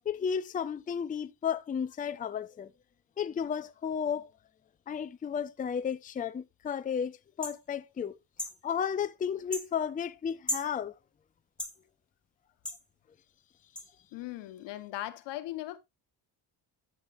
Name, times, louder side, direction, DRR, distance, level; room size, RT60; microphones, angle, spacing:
voice 1, 0.1-2.7 3.2-4.3 4.9-8.1 8.6-10.9, left 7 dB, 20° left, 0.4 m, -33 dB
sound 1, 7.4-7.6 8.4-8.6 9.5-9.7 10.5-10.7 11.6-11.8 12.6-12.8 13.7-13.9, left 1 dB, ahead, 1.5 m, -35 dB
voice 2, 14.1-15.8, left 15 dB, 90° left, 1.2 m, -38 dB
14.5 x 6.1 x 2.5 m
cardioid pair, 110°, 41 cm